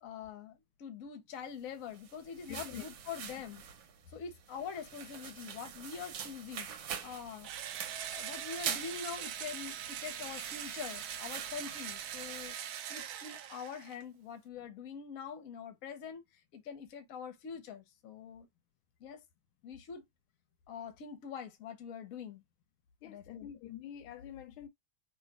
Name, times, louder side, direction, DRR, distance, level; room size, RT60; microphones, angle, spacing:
voice 1, 0.0-3.6 4.1-7.5 8.1-12.6 12.9-16.2 16.5-18.5 19.0-19.2 19.6-20.0 20.7-22.4 23.0-23.5, left 7 dB, 55° left, 1.0 m, -44 dB
sound 1, 1.8-12.5, right 7 dB, 65° right, 1.3 m, -45 dB
voice 2, 2.5-2.8 23.0-24.7, left 10 dB, 80° left, 1.4 m, -46 dB
Engine / Drill, 7.4-14.0, right 9 dB, 90° right, 0.8 m, -42 dB
3.2 x 2.9 x 4.6 m
omnidirectional pair, 2.3 m